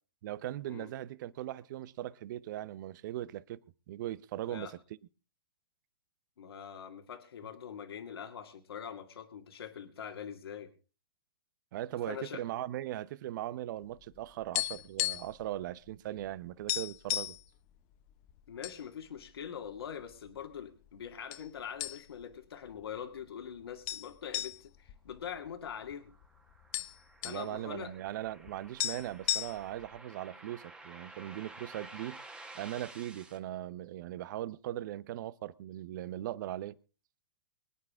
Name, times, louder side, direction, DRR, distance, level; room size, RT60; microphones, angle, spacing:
voice 1, 0.2-3.6 3.9-4.8 11.7-17.4 27.2-32.2 32.5-36.8, right 13 dB, 50° right, 0.8 m, -39 dB
voice 2, 6.4-10.7 12.1-12.4 18.5-26.1 27.2-27.9, left 8 dB, 75° left, 2.2 m, -43 dB
sound 1, 14.0-15.4 15.7-15.9 16.2-16.3 16.7-17.4 18.1-18.8 19.2-19.3 20.0-20.6 21.3-21.5 21.8-22.3 22.7-22.8 23.9-25.9 26.2-26.3 26.5-27.4 28.5-28.6 28.8-29.9, left 15 dB, 35° left, 0.9 m, -35 dB
sound 2, 25.6-33.4, right 2 dB, 5° right, 1.7 m, -52 dB
24.0 x 9.8 x 3.7 m
hypercardioid pair, 130°, 13 cm